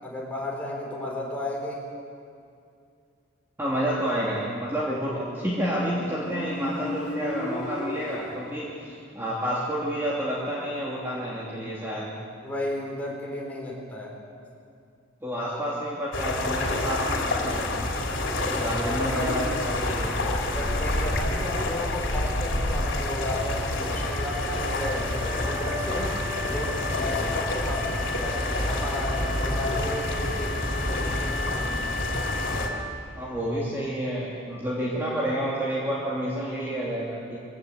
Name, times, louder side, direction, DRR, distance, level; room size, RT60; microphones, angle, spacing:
voice 1, 0.0-1.9 4.9-5.2 12.4-14.1 19.0-19.4 20.5-26.2 26.5-32.0, left 1 dB, 10° left, -3 dB, 4.4 m, -34 dB
voice 2, 3.6-12.1 15.2-17.8 18.5-20.2 33.1-37.4, equal, 10° right, -7 dB, 2.8 m, -29 dB
Motorcycle, 5.4-9.0, left 1 dB, 40° left, 3.6 m, -36 dB
sound 1, 16.1-32.7, left 1 dB, 75° left, 3.1 m, -28 dB
Wind instrument woodwind instrument, 23.9-33.3, left 2 dB, 35° right, 2.2 m, -36 dB
23.0 x 16.5 x 8.3 m, 2.4 s
head